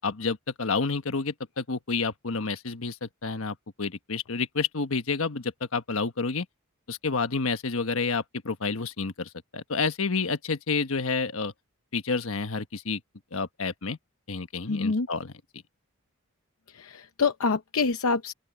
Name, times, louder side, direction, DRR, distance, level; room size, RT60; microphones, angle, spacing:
voice 1, 0.0-6.5 6.9-11.5 11.9-13.0 13.3-14.0 14.3-15.3, left 4 dB, 75° left, 1.3 m, -29 dB
voice 2, 14.7-15.1 16.7-18.3, left 4 dB, 90° left, 0.8 m, -26 dB
open air
head